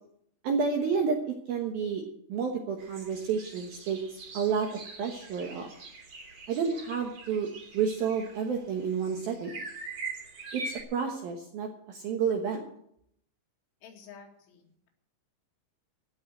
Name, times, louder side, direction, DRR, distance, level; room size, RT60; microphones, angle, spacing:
voice 1, 0.4-2.0 2.3-5.7 6.5-7.5 7.7-9.6 10.5-10.6 10.9-12.6, right 6 dB, 65° right, 2 dB, 2.4 m, -30 dB
sound 1, 2.8-10.8, right 3 dB, 35° right, 3.6 m, -43 dB
voice 2, 13.8-14.9, left 6 dB, 70° left, 1 dB, 4.6 m, -51 dB
16.5 x 6.4 x 9.0 m, 0.71 s
omnidirectional pair, 5.8 m